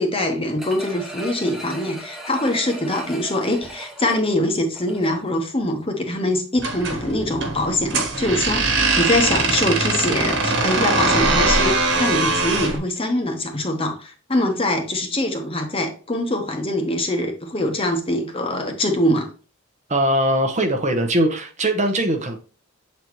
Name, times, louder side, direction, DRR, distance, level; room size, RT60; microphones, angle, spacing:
voice 1, 0.0-19.3, left 1 dB, 25° left, 0.9 m, -23 dB
sound 1, 0.6-5.4 5.8-5.9, right 1 dB, ahead, 0.9 m, -38 dB
sound 2, 6.6-12.8, right 3 dB, 55° right, 1.4 m, -21 dB
voice 2, 19.9-22.4, right 1 dB, 30° right, 0.9 m, -20 dB
7.7 x 4.1 x 3.0 m
head